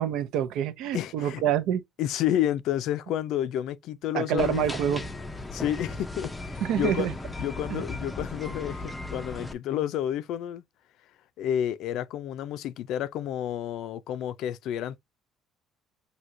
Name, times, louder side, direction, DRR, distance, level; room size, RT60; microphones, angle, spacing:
voice 1, 0.0-1.8 4.1-5.0 6.6-7.1 7.7-7.8, right 10 dB, 70° right, 0.6 m, -27 dB
voice 2, 0.9-1.4 2.0-4.6 5.5-7.1 7.4-10.6 11.4-15.0, left 11 dB, 60° left, 0.5 m, -30 dB
sound 1, 4.4-9.5, left 2 dB, 10° left, 0.5 m, -36 dB
6.1 x 2.8 x 2.6 m
cardioid pair, 170°, 0 cm